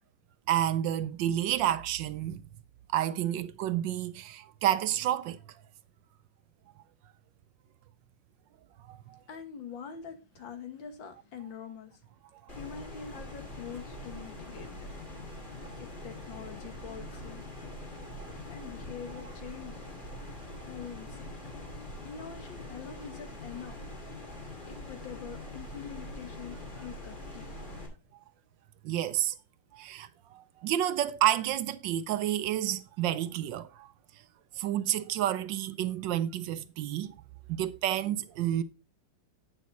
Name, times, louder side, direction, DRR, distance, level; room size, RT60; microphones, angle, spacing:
voice 1, 0.5-2.4 2.9-5.4 8.9-9.2 28.8-29.3 29.7-33.9 34.6-37.1 37.5-38.6, right 12 dB, 75° right, 1.3 m, -30 dB
voice 2, 9.3-12.0 12.6-14.9 15.8-17.4 18.5-19.8 20.7-21.3 22.0-23.8 24.7-27.5, left 7 dB, 75° left, 2.2 m, -44 dB
sound 1, 12.5-27.9, left 1 dB, 25° left, 3.1 m, -43 dB
9.1 x 6.9 x 4.1 m
omnidirectional pair, 2.1 m